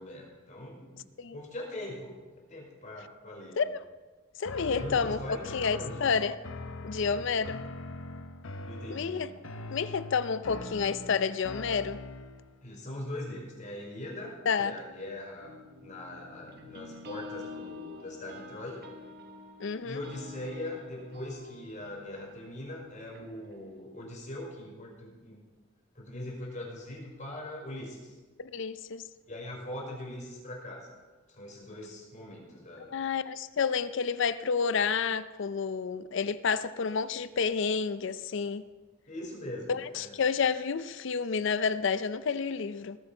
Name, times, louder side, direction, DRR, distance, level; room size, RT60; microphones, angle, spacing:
voice 1, 0.0-1.0 1.3-3.6 4.6-6.1 7.1-7.3 8.6-9.3 12.6-18.8 19.8-25.4 25.9-28.2 29.3-30.9 31.3-33.0 39.1-40.2, left 1 dB, 40° left, -2 dB, 5.0 m, -41 dB
sound 1, 4.4-12.5, left 2 dB, 80° left, 1.0 m, -42 dB
voice 2, 4.4-6.3 6.8-7.6 8.9-9.3 9.7-12.0 14.5-14.7 19.6-20.0 28.4-29.0 32.9-38.6 39.7-43.0, left 5 dB, 65° left, 14 dB, 0.5 m, -30 dB
sound 2, 15.4-23.8, left 3 dB, 55° right, 1.3 m, -47 dB
20.0 x 8.2 x 4.5 m, 1.3 s
head